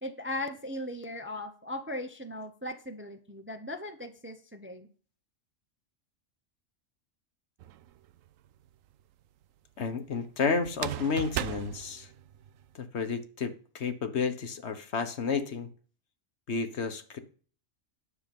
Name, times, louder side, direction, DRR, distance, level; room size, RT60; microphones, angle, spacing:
voice 1, 0.0-4.9, left 1 dB, 10° right, 7 dB, 0.7 m, -38 dB
sound 1, 7.6-8.3 10.7-12.7, right 12 dB, 85° right, 1.0 m, -36 dB
voice 2, 9.8-12.1 12.7-15.7 16.5-17.2, left 5 dB, 60° left, 9 dB, 1.3 m, -31 dB
10.0 x 7.0 x 5.3 m, 0.41 s
omnidirectional pair, 1.3 m